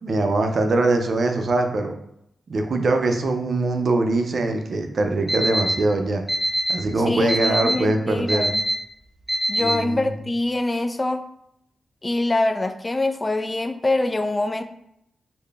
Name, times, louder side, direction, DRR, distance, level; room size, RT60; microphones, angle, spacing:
voice 1, 0.0-1.9 2.5-6.2 6.7-8.6 9.6-10.1, right 2 dB, 60° right, 5 dB, 0.5 m, -22 dB
Alarm, 5.3-5.7 6.3-6.7 7.3-7.7 8.3-8.7 9.3-9.7, right 1 dB, 10° right, 1.0 m, -22 dB
voice 2, 7.1-8.6 9.5-11.2 12.0-14.6, left 2 dB, 25° left, 8 dB, 0.3 m, -24 dB
3.9 x 2.1 x 3.3 m, 0.76 s
cardioid pair, 70°, 0 cm